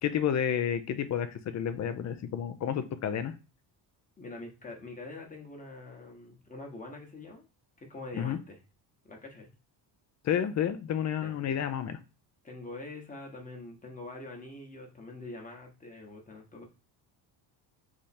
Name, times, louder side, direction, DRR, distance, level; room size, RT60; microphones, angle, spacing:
voice 1, 0.0-3.3 8.2-8.4 10.2-12.0, left 9 dB, 40° left, 11 dB, 0.5 m, -30 dB
voice 2, 4.2-7.4 7.8-8.6 9.0-9.5 11.2-11.4 12.4-16.7, left 2 dB, 15° left, 1 dB, 1.1 m, -44 dB
3.6 x 3.2 x 4.2 m, 0.31 s
cardioid pair, 140°, 46 cm